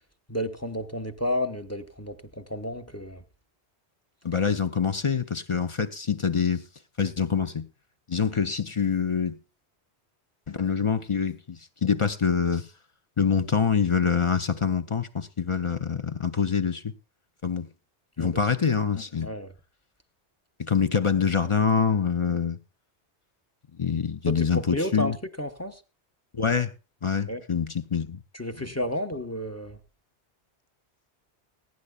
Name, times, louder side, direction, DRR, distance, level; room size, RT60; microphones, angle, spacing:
voice 1, 0.3-3.2 18.2-18.4 19.2-19.5 24.3-25.8 27.3-27.4 28.3-29.8, left 1 dB, 15° left, 0.9 m, -31 dB
voice 2, 4.2-6.7 7.0-7.7 8.1-9.4 10.5-12.7 13.2-16.9 17.4-17.7 18.2-19.3 20.7-22.6 23.8-25.2 26.3-26.7 27.0-28.2, left 6 dB, 35° left, 0.6 m, -25 dB
21.5 x 10.0 x 2.3 m
omnidirectional pair, 1.1 m